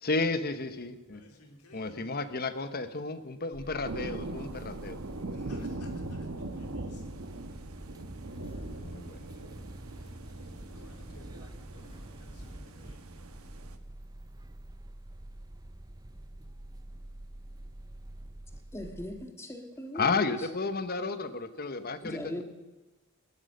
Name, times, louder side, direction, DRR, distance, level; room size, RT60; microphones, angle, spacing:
voice 1, 0.0-1.2 1.7-5.0 8.8-9.3 19.9-22.4, left 3 dB, 45° left, 1.0 m, -32 dB
voice 2, 1.1-2.2 5.3-7.2 10.7-13.0, left 1 dB, 90° left, 3.4 m, -57 dB
sound 1, 3.5-19.3, right 1 dB, 15° right, 0.5 m, -47 dB
sound 2, 3.8-13.8, right 2 dB, 70° right, 1.2 m, -41 dB
Engine starting, 8.3-13.9, equal, 30° left, 3.5 m, -50 dB
voice 3, 18.7-20.2 22.0-22.4, left 1 dB, 10° left, 1.8 m, -39 dB
16.5 x 12.0 x 6.6 m
head